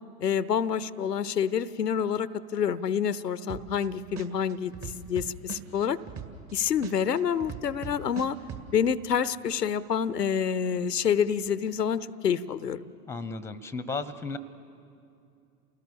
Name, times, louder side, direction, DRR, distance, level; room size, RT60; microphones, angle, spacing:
voice 1, 0.2-6.0 6.5-8.4 8.7-12.8, left 7 dB, 90° left, 17 dB, 0.7 m, -27 dB
sound 1, 3.5-3.9 4.2-6.5 6.8-8.6, right 7 dB, 35° right, 2.0 m, -38 dB
voice 2, 13.1-14.4, left 3 dB, 5° left, 15 dB, 0.8 m, -34 dB
29.0 x 19.0 x 6.9 m, 2.5 s
figure-of-eight pair, 90°, 47 cm